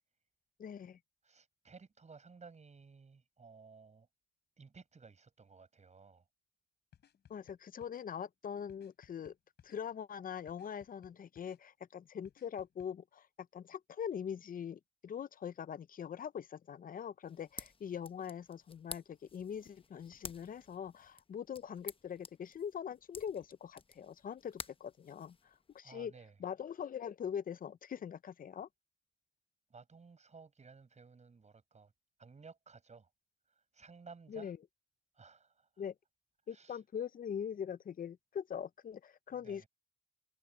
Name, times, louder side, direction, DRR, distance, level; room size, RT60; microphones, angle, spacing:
voice 1, 0.6-1.0 7.3-9.3 9.6-25.4 25.7-26.1 26.4-28.7 34.3-34.6 35.8-35.9 36.5-39.6, left 8 dB, 55° left, 0.6 m, -42 dB
voice 2, 1.2-4.1 4.6-6.2 25.8-26.4 29.7-31.9 32.2-33.1 33.7-34.5 35.1-35.7 36.5-36.8 39.4-39.7, right 4 dB, 45° right, 7.1 m, -56 dB
sound 1, 6.9-8.0 8.7-9.8 10.5-11.6 12.2-12.9, left 9 dB, 80° left, 5.5 m, -63 dB
sound 2, 17.2-25.8, left 4 dB, 30° left, 1.0 m, -52 dB
cardioid pair, 75°, 17 cm